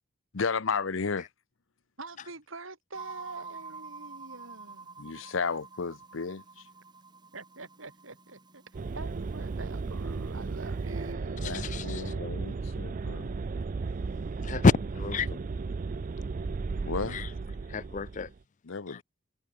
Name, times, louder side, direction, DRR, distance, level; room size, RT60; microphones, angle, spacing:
voice 1, 0.3-1.3 5.0-6.7 11.4-13.4 16.8-17.2 18.6-19.0, left 5 dB, 70° left, 0.8 m, -33 dB
voice 2, 2.0-5.0 7.3-11.6, right 3 dB, 75° right, 5.7 m, -45 dB
sound 1, 2.9-11.1, right 4 dB, 20° right, 3.7 m, -49 dB
sound 2, 8.7-18.4, right 4 dB, 40° right, 0.4 m, -35 dB
voice 3, 14.4-15.4 17.1-17.3 17.7-18.3 18.9-19.0, left 4 dB, 35° left, 0.5 m, -27 dB
head